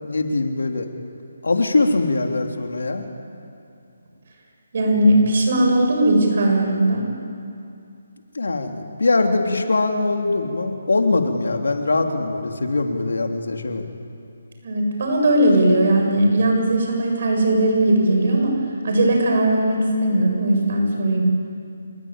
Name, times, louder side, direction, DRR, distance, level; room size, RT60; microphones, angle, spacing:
voice 1, 0.0-0.9 1.4-3.0 8.3-13.9, left 3 dB, 85° left, 4 dB, 3.3 m, -22 dB
voice 2, 4.7-7.1 14.6-21.2, right 1 dB, 50° right, 2 dB, 7.5 m, -18 dB
27.0 x 21.5 x 9.0 m, 2.6 s
hypercardioid pair, 165°, 0 cm